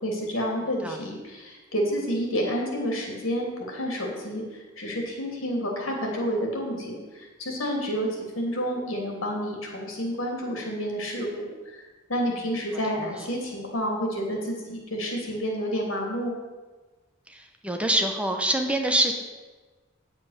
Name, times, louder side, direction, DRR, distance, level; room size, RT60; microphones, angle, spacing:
voice 1, 0.0-11.8 12.1-16.3, equal, 85° left, 0 dB, 3.0 m, -29 dB
voice 2, 12.9-13.2 17.3-19.1, right 1 dB, 5° right, 4 dB, 0.9 m, -25 dB
9.5 x 7.5 x 6.6 m, 1.3 s
head